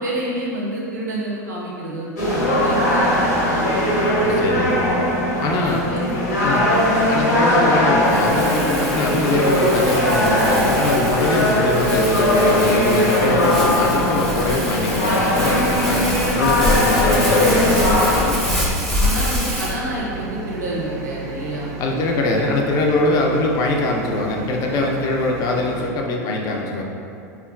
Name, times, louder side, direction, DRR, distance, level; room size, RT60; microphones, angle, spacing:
voice 1, 0.0-3.8 4.1-4.2 5.6-6.9 19.0-22.2, right 1 dB, 90° right, -5 dB, 0.5 m, -29 dB
sound 1, 2.2-18.2, left 1 dB, 80° left, 0.7 m, -19 dB
voice 2, 4.2-4.8 5.4-5.8 6.4-6.6 7.1-18.7 21.8-26.8, left 2 dB, 40° left, 0 dB, 0.4 m, -22 dB
Crumpling crinkling, 8.1-19.8, left 1 dB, ahead, 0.6 m, -27 dB
sound 2, 10.0-25.9, right 3 dB, 40° right, 0.4 m, -33 dB
3.5 x 2.2 x 2.3 m, 2.5 s
hypercardioid pair, 95°, 9 cm